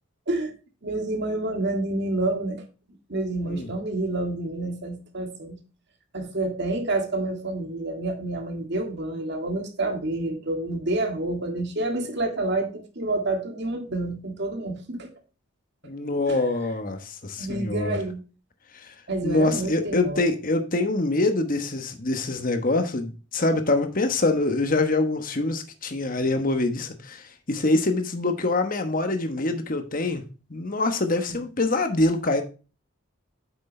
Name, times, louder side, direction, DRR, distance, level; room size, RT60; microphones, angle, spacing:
voice 1, 0.8-2.6 3.1-5.6 6.1-15.1 16.3-16.5 17.4-18.2 19.1-20.3, right 2 dB, 55° right, 1.9 m, -28 dB
voice 2, 15.8-18.0 18.7-18.9 19.2-30.2 30.5-32.4, left 2 dB, 40° left, 1.1 m, -25 dB
8.4 x 6.3 x 3.2 m
head